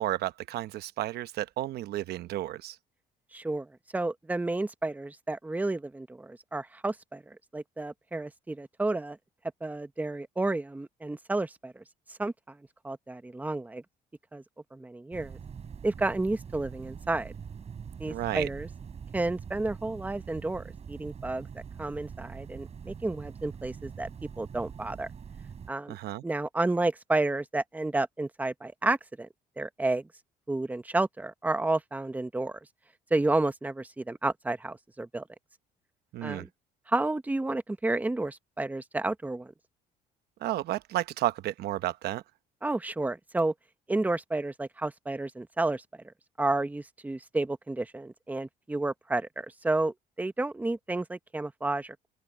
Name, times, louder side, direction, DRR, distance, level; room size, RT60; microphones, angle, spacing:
voice 1, 0.0-2.8 18.1-18.5 25.9-26.2 36.1-36.4 40.4-42.2, right 14 dB, 70° right, 1.0 m, -32 dB
voice 2, 3.3-9.2 9.6-11.8 12.1-12.6 12.8-13.8 14.3-14.4 14.7-15.4 15.8-17.3 18.0-18.7 19.1-21.5 21.8-24.1 24.4-25.1 25.7-26.0 26.2-29.3 29.6-30.0 30.5-32.6 33.1-35.3 36.2-36.5 36.9-39.5 42.6-43.5 43.9-52.0, right 2 dB, 10° right, 1.0 m, -31 dB
sound 1, 15.1-25.7, right 7 dB, 40° right, 5.8 m, -43 dB
open air
cardioid pair, 110°, 17 cm